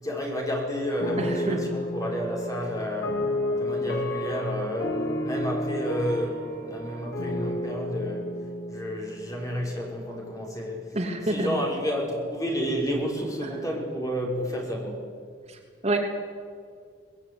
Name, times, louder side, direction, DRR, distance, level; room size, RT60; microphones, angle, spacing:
voice 1, 0.0-8.3 8.7-11.0 11.2-15.1, equal, 20° left, -1 dB, 5.7 m, -31 dB
sound 1, 1.0-10.2, left 1 dB, 65° left, 3.9 m, -31 dB
voice 2, 1.2-1.6 10.9-11.6 13.4-13.5 15.5-16.0, right 1 dB, 35° right, 2 dB, 3.1 m, -28 dB
24.0 x 20.0 x 9.8 m, 2.1 s
head